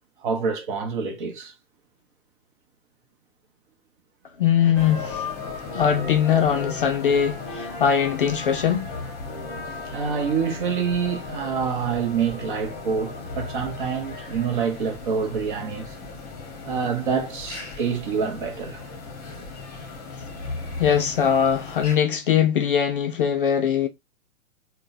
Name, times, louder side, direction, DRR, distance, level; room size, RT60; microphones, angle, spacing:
voice 1, 0.2-1.5 9.9-15.9 16.6-18.8, right 6 dB, 35° right, 0.8 m, -26 dB
voice 2, 4.4-5.3 5.7-8.9 20.8-23.9, left 8 dB, 40° left, 0.4 m, -21 dB
sound 1, 4.7-22.0, left 3 dB, 25° left, 1.1 m, -36 dB
3.7 x 2.2 x 2.6 m
figure-of-eight pair, 120°, 42 cm